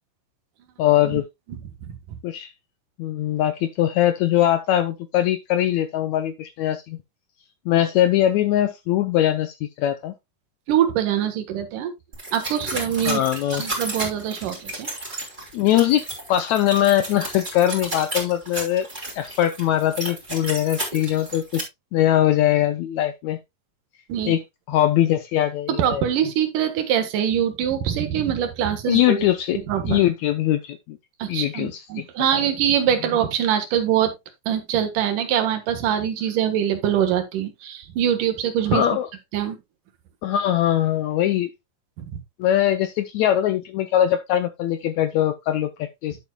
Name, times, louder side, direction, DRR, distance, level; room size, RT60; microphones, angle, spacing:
voice 1, 0.8-1.2 2.2-2.5 3.0-7.0 7.7-10.1 13.1-13.6 15.5-18.9 19.1-21.6 21.9-23.4 24.2-24.4 24.7-26.0 28.8-29.6 29.8-31.0 31.3-32.0 38.7-39.1 40.2-41.5 42.4-46.2, left 12 dB, 80° left, 1.7 m, -21 dB
voice 2, 1.5-1.9 10.7-11.9 12.3-13.2 13.6-14.9 24.1-24.3 25.7-29.2 29.5-30.0 31.2-34.1 34.5-38.8 39.3-39.6 42.0-42.2, right 9 dB, 75° right, 2.9 m, -23 dB
sound 1, 12.1-21.6, right 2 dB, 15° right, 2.7 m, -32 dB
11.0 x 7.4 x 2.3 m
omnidirectional pair, 3.8 m